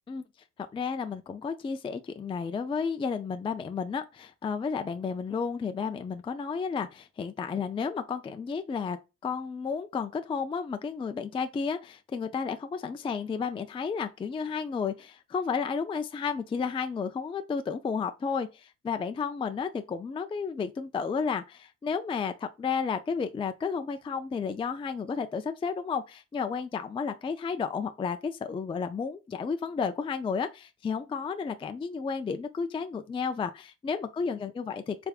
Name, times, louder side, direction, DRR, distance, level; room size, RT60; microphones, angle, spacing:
voice 1, 0.7-9.0 9.2-35.0, left 5 dB, 20° left, 0.3 m, -32 dB
3.4 x 3.4 x 2.3 m
cardioid pair, 90°, 30 cm